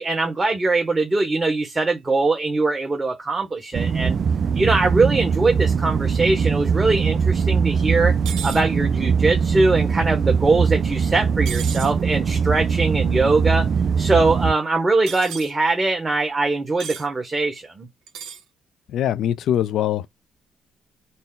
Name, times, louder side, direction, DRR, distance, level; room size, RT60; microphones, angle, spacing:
voice 1, 0.0-4.2 4.5-8.1 8.4-13.7 14.0-17.9, right 3 dB, 25° right, 1.3 m, -21 dB
sound 1, 3.7-14.5, right 6 dB, 55° right, 0.4 m, -21 dB
sound 2, 8.3-8.6 11.5-11.9 15.1-15.5 16.8-17.1 18.1-18.4, right 7 dB, 90° right, 0.9 m, -33 dB
voice 2, 18.9-20.1, left 11 dB, 75° left, 0.4 m, -22 dB
4.1 x 2.1 x 3.8 m
cardioid pair, 90°, 0 cm